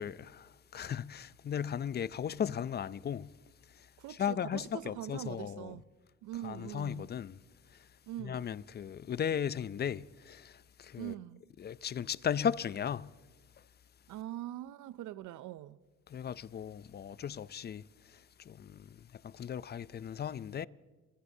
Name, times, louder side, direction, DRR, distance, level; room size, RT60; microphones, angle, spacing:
voice 1, 0.0-3.3 3.7-5.8 6.4-7.4 7.7-7.9 8.2-11.2 11.6-13.1 16.1-20.7, left 8 dB, 35° left, 0.4 m, -37 dB
voice 2, 4.0-5.8 6.2-7.1 8.1-8.4 11.0-11.4 14.1-15.8, right 14 dB, 75° right, 0.5 m, -42 dB
24.5 x 16.5 x 2.7 m
cardioid pair, 90°, 30 cm